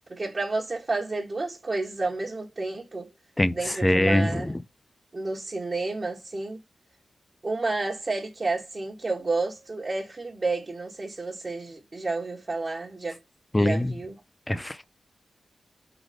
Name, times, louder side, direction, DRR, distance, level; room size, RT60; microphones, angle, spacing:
voice 1, 0.1-3.1 3.5-4.5 5.1-6.6 7.4-13.2 13.6-14.2, right 3 dB, 35° right, 1.3 m, -30 dB
voice 2, 3.8-4.4 13.5-13.9 14.5-14.8, left 1 dB, 15° left, 0.5 m, -22 dB
4.8 x 4.1 x 4.9 m
wide cardioid pair, 85°, 0 cm